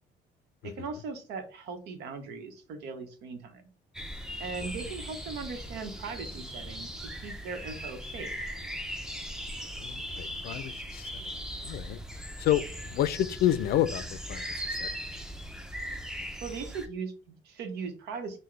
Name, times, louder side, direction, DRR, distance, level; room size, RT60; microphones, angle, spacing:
voice 1, 0.6-3.7 4.4-8.3 16.4-18.4, right 5 dB, 80° right, 0.9 m, -39 dB
sound 1, 3.9-16.9, equal, 5° right, 0.6 m, -39 dB
voice 2, 9.8-11.2 11.6-12.0 12.4-12.6 12.9-14.0 14.3-14.4 14.7-14.9, left 12 dB, 65° left, 0.4 m, -29 dB
5.8 x 2.2 x 3.2 m
cardioid pair, 110°, 17 cm